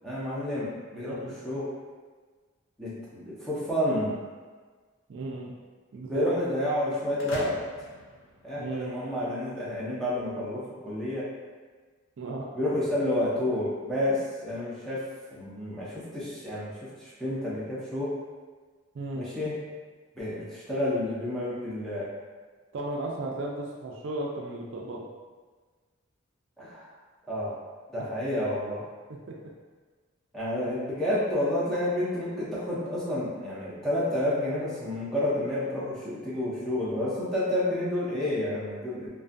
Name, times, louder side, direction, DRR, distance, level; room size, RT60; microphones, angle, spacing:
voice 1, 0.0-1.7 2.8-4.2 6.1-7.6 8.4-11.3 12.5-15.0 15.3-18.1 19.1-19.6 20.2-22.1 26.6-26.9 27.3-27.6 27.9-28.8 30.3-39.1, left 1 dB, ahead, -9 dB, 0.5 m, -30 dB
voice 2, 5.1-5.5 5.9-6.3 8.5-8.9 12.2-12.5 18.9-19.2 22.7-25.1 29.3-29.4 30.6-30.8, right 2 dB, 60° right, -1 dB, 0.3 m, -35 dB
sound 1, 7.2-9.1, left 2 dB, 60° left, 0.5 m, -41 dB
2.5 x 2.3 x 2.5 m, 1.4 s
head